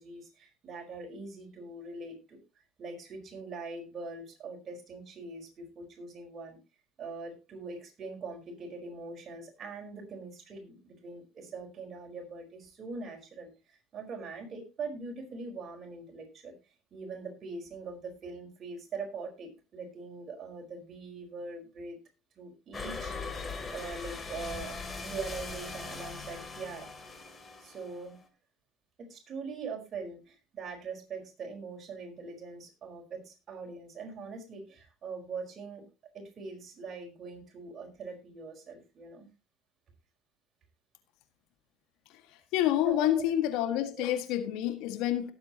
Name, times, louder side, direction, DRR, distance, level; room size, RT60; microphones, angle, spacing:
voice 1, 0.0-6.6 7.0-16.5 16.9-22.0 22.4-23.5 23.7-24.7 25.0-26.9 27.6-28.2 29.0-35.8 36.1-39.3 42.8-43.2 43.8-44.1, right 4 dB, 40° right, 2 dB, 4.6 m, -42 dB
sound 1, 22.7-28.3, left 4 dB, 25° left, 3.0 m, -40 dB
voice 2, 42.5-45.3, left 12 dB, 65° left, 7 dB, 1.8 m, -28 dB
18.0 x 8.0 x 2.9 m, 0.28 s
hypercardioid pair, 70°, 0 cm